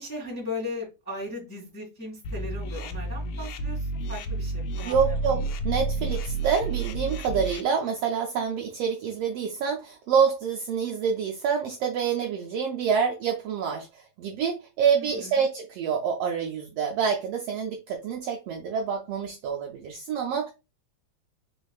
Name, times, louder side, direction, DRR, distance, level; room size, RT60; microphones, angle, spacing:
voice 1, 0.0-5.2 15.0-15.4, left 2 dB, 10° left, 1.2 m, -37 dB
sound 1, 2.2-7.6, right 2 dB, 90° left, 1.4 m, -30 dB
voice 2, 4.8-20.5, right 6 dB, 75° right, 1.5 m, -27 dB
4.3 x 3.8 x 2.3 m
omnidirectional pair, 3.3 m